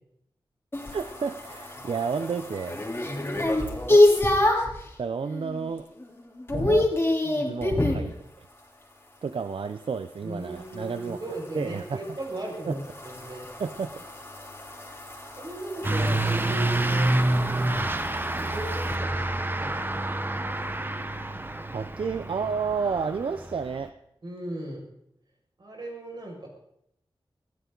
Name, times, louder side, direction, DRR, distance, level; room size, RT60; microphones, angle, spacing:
sound 1, 0.7-4.8 5.3-5.7 6.0-8.1 10.6-19.0, left 1 dB, 25° left, 3.4 m, -27 dB
voice 1, 0.9-2.8 3.9-4.0 5.0-5.8 6.5-6.9 7.5-8.5 9.2-11.2 11.5-12.0 12.7-12.8 13.6-14.0 21.7-23.9, right 5 dB, 80° right, 10 dB, 0.6 m, -31 dB
voice 2, 1.8-2.1 3.0-3.6 7.2-7.5 10.2-13.5 15.4-17.2 17.5-18.0 18.3-20.3 24.2-24.9 25.6-26.5, right 1 dB, 55° right, -1 dB, 6.0 m, -37 dB
Truck / Accelerating revving vroom, 15.8-23.8, right 1 dB, 25° right, 1.0 m, -28 dB
20.0 x 15.5 x 4.0 m, 0.77 s
wide cardioid pair, 90°, 9 cm